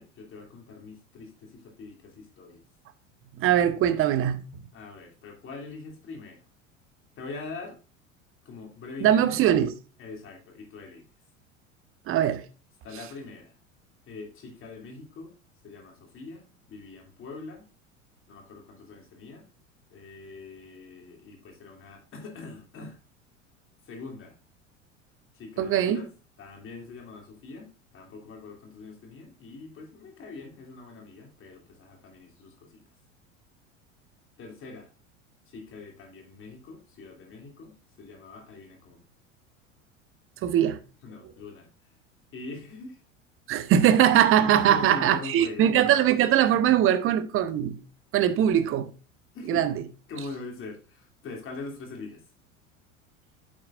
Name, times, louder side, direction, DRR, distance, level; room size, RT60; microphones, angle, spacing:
voice 1, 0.0-2.6 4.7-6.4 7.2-7.8 8.4-9.5 10.0-11.0 12.8-13.5 14.1-15.3 15.6-17.6 18.3-19.5 19.9-23.0 23.8-24.4 25.3-26.1 26.4-32.8 34.4-34.9 35.5-39.0 41.0-41.7 42.3-43.0 44.4-45.7 49.3-49.6 50.1-52.2, left 3 dB, 30° left, 2.7 m, -42 dB
voice 2, 3.4-4.4 9.0-9.7 12.1-12.4 25.6-26.0 40.4-40.8 43.5-47.8 48.1-48.9 49.5-49.7, right 10 dB, 35° right, 0.8 m, -21 dB
8.8 x 7.5 x 2.5 m
figure-of-eight pair, 75°, 39 cm